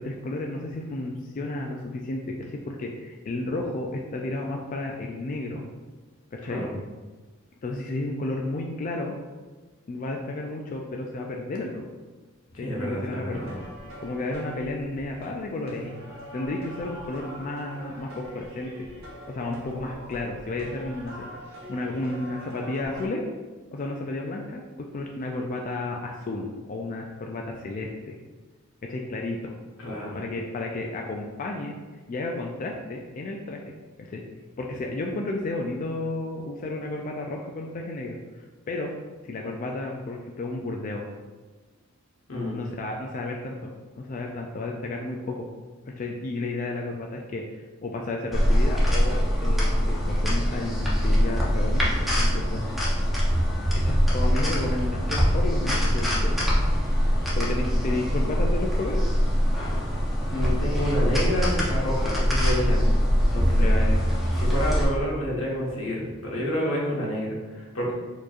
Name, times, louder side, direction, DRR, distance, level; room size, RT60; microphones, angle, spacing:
voice 1, 0.0-5.6 6.3-6.6 7.6-9.2 9.9-11.8 12.6-13.5 14.0-16.0 16.3-18.9 19.3-23.3 23.7-28.2 28.8-29.5 30.1-31.7 32.1-33.6 34.1-34.2 34.6-38.9 39.2-41.1 42.5-43.7 44.0-45.5 46.0-52.6 53.7-56.5 57.4-59.0 63.5-64.1, left 2 dB, 40° left, 0 dB, 0.3 m, -32 dB
voice 2, 6.4-6.7 12.5-13.5 29.8-30.2 42.3-42.6 60.3-62.8 63.3-64.0 64.4-67.9, equal, 85° left, -4 dB, 1.1 m, -29 dB
sound 1, 13.3-23.1, right 1 dB, 80° right, 1.0 m, -43 dB
sound 2, 48.3-64.8, equal, ahead, 0.7 m, -23 dB
4.4 x 2.9 x 2.4 m, 1.3 s
head